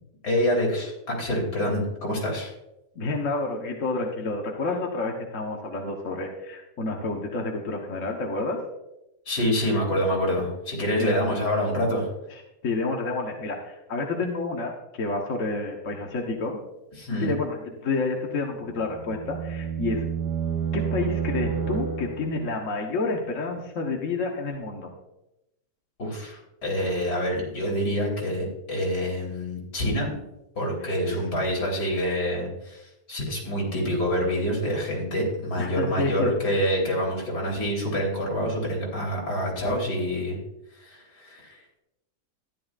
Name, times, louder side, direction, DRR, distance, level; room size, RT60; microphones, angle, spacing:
voice 1, 0.2-2.5 9.3-12.1 17.0-17.4 26.0-30.2 30.6-40.4 40.8-41.8, equal, 75° left, -2 dB, 3.9 m, -27 dB
voice 2, 2.9-8.6 11.0-11.2 12.6-16.6 17.2-20.0 20.7-24.9 30.8-31.2 35.6-36.3, left 3 dB, 55° left, 0 dB, 1.4 m, -29 dB
sound 1, 18.6-22.6, right 7 dB, 85° right, 1.7 m, -30 dB
13.5 x 11.0 x 2.5 m, 0.90 s
omnidirectional pair, 1.8 m